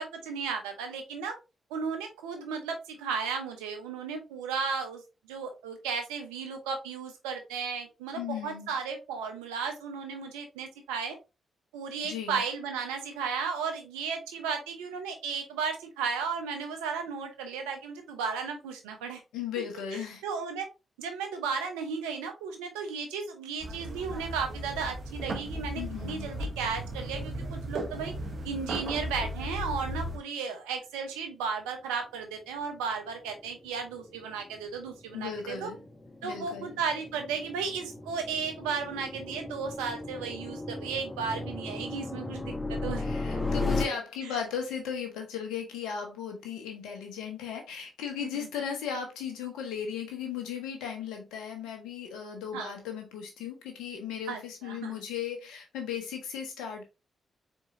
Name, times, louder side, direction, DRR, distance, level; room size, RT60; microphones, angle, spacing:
voice 1, 0.0-1.4 1.7-5.0 5.3-11.2 11.7-19.2 20.2-20.7 21.0-28.1 28.4-35.7 36.2-43.0 48.2-48.3 52.5-52.7 54.3-55.0, right 5 dB, 90° right, 5 dB, 0.9 m, -34 dB
voice 2, 8.1-8.7 12.0-12.4 19.3-20.2 25.7-26.3 35.1-35.8 36.2-36.8 43.0-56.8, left 8 dB, 85° left, 3 dB, 1.3 m, -36 dB
sound 1, 23.6-30.2, equal, 55° right, 1.2 m, -36 dB
sound 2, 32.7-43.8, left 2 dB, 30° left, 2.3 m, -36 dB
4.4 x 4.4 x 2.6 m, 0.27 s
hypercardioid pair, 40°, 0 cm